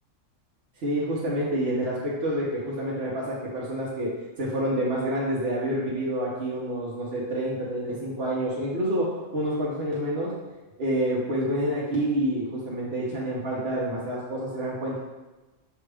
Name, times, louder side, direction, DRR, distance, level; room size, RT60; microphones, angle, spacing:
voice 1, 0.8-10.4 10.8-15.0, right 1 dB, 55° right, -6 dB, 1.0 m, -28 dB
5.6 x 2.4 x 3.3 m, 1.1 s
omnidirectional pair, 1.3 m